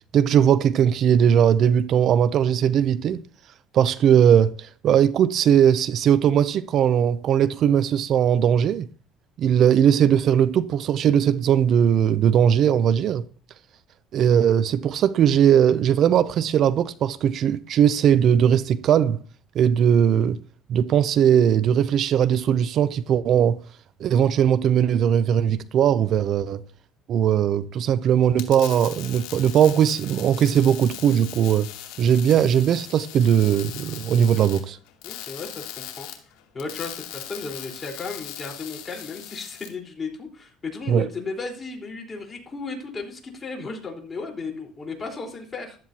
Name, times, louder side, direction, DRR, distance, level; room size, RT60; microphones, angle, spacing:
voice 1, 0.1-3.2 3.7-8.9 9.4-13.2 14.1-19.2 19.5-20.4 20.7-23.6 24.0-26.6 27.1-31.7 32.0-34.8 40.9-41.1, right 9 dB, 55° right, 0.6 m, -19 dB
sound 1, 28.2-39.7, left 12 dB, 85° left, 2.6 m, -39 dB
voice 2, 35.0-36.1 36.5-45.8, left 4 dB, 25° left, 4.2 m, -35 dB
15.0 x 12.5 x 2.9 m
supercardioid pair, 105°, 0 cm